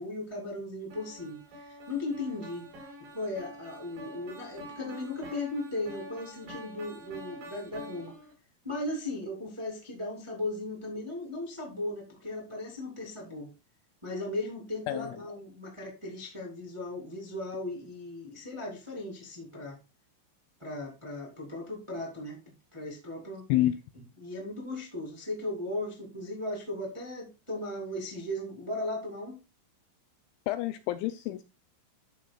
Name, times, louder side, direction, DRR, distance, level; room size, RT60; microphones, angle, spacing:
voice 1, 0.0-2.6 3.1-8.1 8.6-13.5 14.0-19.8 20.6-22.4 22.7-23.4 24.2-29.4, left 2 dB, 20° right, -2 dB, 0.7 m, -37 dB
sound 1, 0.9-8.3, equal, 55° right, 6.7 m, -46 dB
voice 2, 30.5-31.4, left 14 dB, 85° left, 11 dB, 2.8 m, -28 dB
13.0 x 6.0 x 2.3 m, 0.27 s
omnidirectional pair, 5.8 m